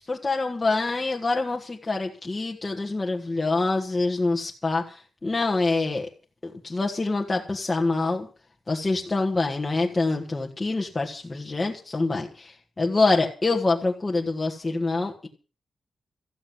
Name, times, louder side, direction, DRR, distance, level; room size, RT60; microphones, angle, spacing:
voice 1, 0.1-4.8 5.2-6.1 6.4-8.3 8.7-12.3 12.8-15.3, left 3 dB, 20° left, 0 dB, 1.6 m, -25 dB
14.5 x 7.6 x 9.5 m, 0.37 s
wide cardioid pair, 155°, 0 cm